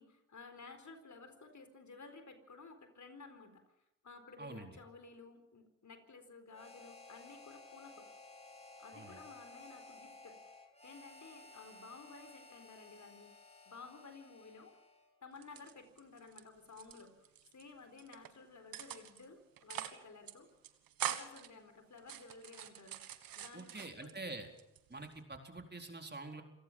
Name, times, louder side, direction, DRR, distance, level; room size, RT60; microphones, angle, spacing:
voice 1, 0.0-8.1 8.8-10.5 10.8-13.3 13.7-14.7 15.2-20.5 21.0-23.0 23.3-24.3, left 4 dB, 55° left, 8 dB, 4.2 m, -54 dB
voice 2, 4.4-4.7 8.9-9.2 23.5-24.5 24.9-26.4, right 2 dB, 30° right, 4 dB, 4.3 m, -46 dB
Harmonica, 6.5-15.1, left 3 dB, 20° left, 5.4 m, -56 dB
sound 1, 15.4-16.4 16.7-17.6 18.0-18.3 18.7-19.2 19.6-20.0 20.3-20.4 20.6-21.5 22.0-24.2 24.6-25.2, right 11 dB, 90° right, 1.5 m, -44 dB
27.0 x 17.5 x 7.4 m, 0.89 s
supercardioid pair, 45°, 34 cm